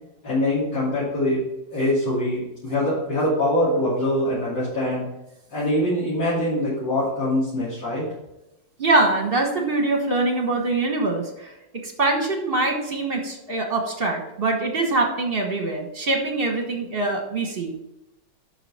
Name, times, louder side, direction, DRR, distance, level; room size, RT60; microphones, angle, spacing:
voice 1, 0.2-1.4 1.7-5.0 5.5-8.1, left 1 dB, 75° left, -11 dB, 3.5 m, -23 dB
voice 2, 8.8-11.5 11.8-17.7, right 2 dB, 35° right, 2 dB, 1.3 m, -23 dB
8.0 x 6.0 x 4.2 m, 0.93 s
omnidirectional pair, 1.9 m